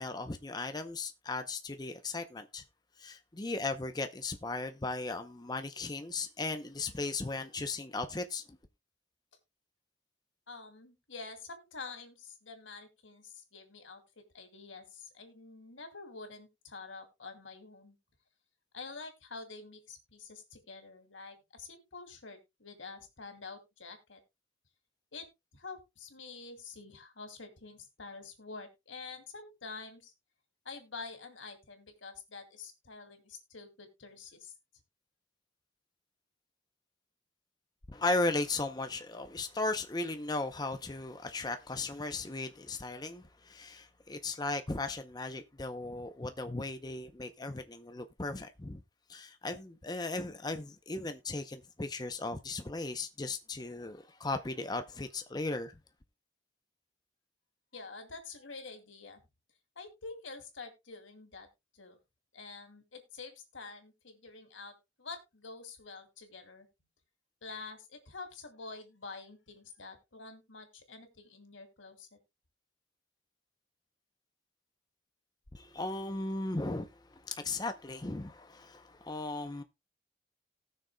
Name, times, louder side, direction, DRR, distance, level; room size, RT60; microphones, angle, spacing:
voice 1, 0.0-2.6 3.0-8.6 37.9-48.8 49.1-55.7 75.5-79.6, left 2 dB, 20° left, 0.6 m, -36 dB
voice 2, 10.5-18.0 18.7-24.2 25.1-25.3 25.5-30.1 30.6-34.5 57.7-59.2 59.8-61.5 61.7-62.0 62.3-66.7 67.4-72.2, left 4 dB, 90° left, 2.5 m, -47 dB
19.0 x 6.5 x 2.2 m
head